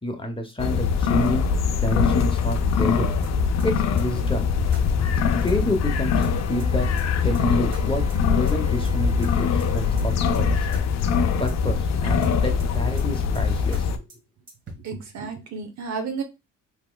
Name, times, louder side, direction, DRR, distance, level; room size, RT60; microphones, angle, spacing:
voice 1, 0.0-1.4 1.8-3.1 3.6-4.5 5.4-6.9 7.2-10.7 11.4-14.1, equal, 15° left, 4 dB, 0.8 m, -29 dB
sound 1, 0.6-14.0, left 6 dB, 55° left, 0.6 m, -22 dB
sound 2, 3.2-3.7 4.0-4.1 4.3-4.4 4.7-4.8 5.1-5.2 5.5-5.9 6.2-6.7 7.0-7.1 7.3-7.4 7.7-7.8 8.1-8.2 8.5-8.9 9.2-9.7 10.0-10.1 10.3-10.4 10.7-10.8 11.1-11.2 11.5-11.9 12.2-12.7 13.0-13.1 13.3-13.4 13.7-13.8 14.1-14.2 14.5-14.9, right 3 dB, 40° right, 1.3 m, -40 dB
Wind instrument woodwind instrument, 6.3-10.8, right 2 dB, 10° right, 1.5 m, -46 dB
voice 2, 14.8-16.2, right 5 dB, 60° right, 7 dB, 0.9 m, -32 dB
3.5 x 2.9 x 2.2 m, 0.25 s
supercardioid pair, 80°, 32 cm